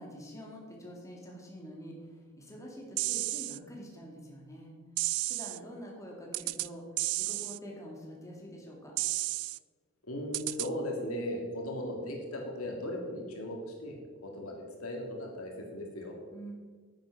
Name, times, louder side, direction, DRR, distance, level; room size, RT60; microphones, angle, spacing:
voice 1, 0.0-4.7 5.3-6.8 7.2-9.0 16.3-16.5, equal, 15° left, -2 dB, 2.1 m, -46 dB
sound 1, 3.0-3.6 5.0-5.6 6.3-6.7 7.0-7.6 9.0-9.6 10.3-10.7, right 19 dB, 85° right, 0.3 m, -32 dB
voice 2, 10.1-14.0 14.2-16.1, left 1 dB, 75° left, 1 dB, 2.3 m, -37 dB
9.5 x 7.9 x 5.9 m, 1.5 s
head